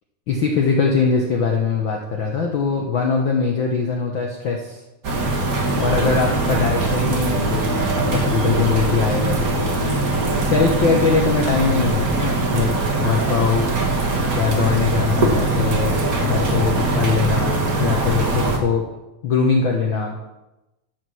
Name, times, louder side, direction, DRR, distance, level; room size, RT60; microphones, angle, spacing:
voice 1, 0.3-4.8 5.8-7.7 7.9-9.4 10.4-12.7 13.0-13.8 14.3-18.8 19.2-20.2, left 5 dB, 85° left, 0 dB, 1.0 m, -21 dB
sound 1, 5.0-18.6, right 2 dB, 50° right, 1.0 m, -21 dB
14.0 x 5.1 x 6.2 m, 1.0 s
omnidirectional pair, 3.7 m